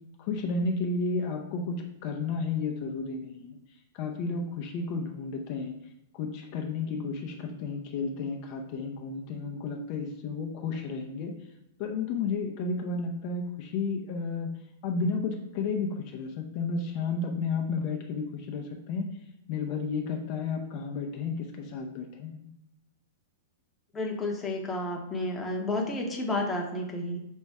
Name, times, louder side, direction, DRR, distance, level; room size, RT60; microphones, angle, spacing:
voice 1, 0.2-1.7 2.0-3.6 3.9-5.7 6.1-11.3 11.8-14.5 14.8-19.1 19.5-22.5, left 4 dB, 45° left, 2 dB, 0.5 m, -32 dB
voice 2, 23.9-27.2, left 2 dB, 10° left, 0 dB, 0.8 m, -31 dB
5.2 x 2.1 x 3.5 m, 0.85 s
hypercardioid pair, 135°, 0 cm